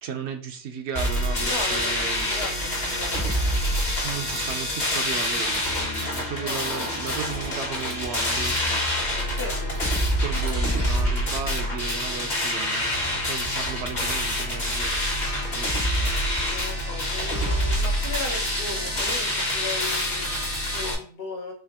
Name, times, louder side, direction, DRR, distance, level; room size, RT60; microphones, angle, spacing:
voice 1, 0.0-2.3 4.0-8.9 10.2-16.3, right 6 dB, 75° right, 6 dB, 0.9 m, -35 dB
sound 1, 0.9-20.9, equal, 45° left, 1.0 m, -26 dB
voice 2, 1.4-1.9 2.2-3.6 6.3-7.0 9.3-9.8 16.5-21.5, left 3 dB, 65° left, 0 dB, 1.2 m, -37 dB
sound 2, 2.7-10.9, right 1 dB, 90° right, 1.5 m, -44 dB
3.9 x 3.0 x 2.9 m, 0.42 s
omnidirectional pair, 1.2 m